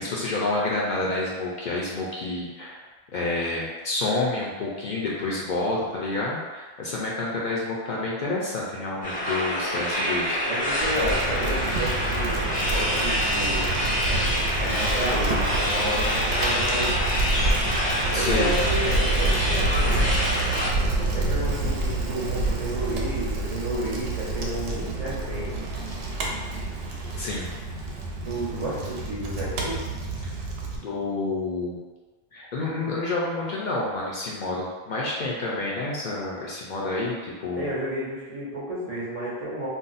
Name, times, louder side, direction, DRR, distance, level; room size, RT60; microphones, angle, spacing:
voice 1, 0.0-2.8 3.1-10.4 18.1-18.5 27.2-27.5 30.7-31.8 32.3-37.7, left 2 dB, 60° left, -4 dB, 0.6 m, -29 dB
sound 1, 9.0-20.7, equal, 10° left, 0.4 m, -26 dB
voice 2, 10.4-13.8 14.6-17.0 18.1-20.0 21.1-25.5 28.2-29.8 37.5-39.7, right 1 dB, 45° right, -7 dB, 0.6 m, -31 dB
Bicycle, 10.8-30.8, right 2 dB, 75° right, 0.8 m, -28 dB
2.5 x 2.0 x 3.9 m, 1.3 s
omnidirectional pair, 1.0 m